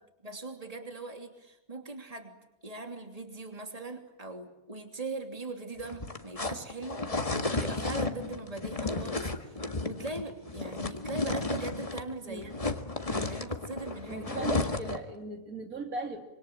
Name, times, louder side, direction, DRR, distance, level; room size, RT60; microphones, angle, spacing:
voice 1, 0.2-2.4 2.6-12.5 13.2-14.2, right 3 dB, 25° right, 5 dB, 3.1 m, -40 dB
sound 1, 5.8-12.1 12.4-15.1, left 3 dB, 25° left, 1.7 m, -33 dB
voice 2, 14.1-16.3, right 3 dB, 75° right, 4 dB, 3.5 m, -38 dB
26.0 x 25.0 x 9.0 m, 0.91 s
omnidirectional pair, 1.5 m